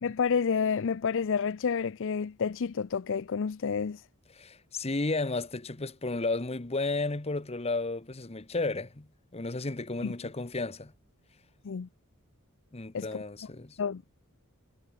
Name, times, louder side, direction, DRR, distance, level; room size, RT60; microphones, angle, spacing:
voice 1, 0.0-4.0 10.0-10.1 11.6-11.9 12.9-13.2 13.8-14.0, left 6 dB, 60° left, 0.5 m, -29 dB
voice 2, 4.3-9.1 9.3-10.9 12.7-13.8, left 3 dB, 30° left, 1.0 m, -33 dB
head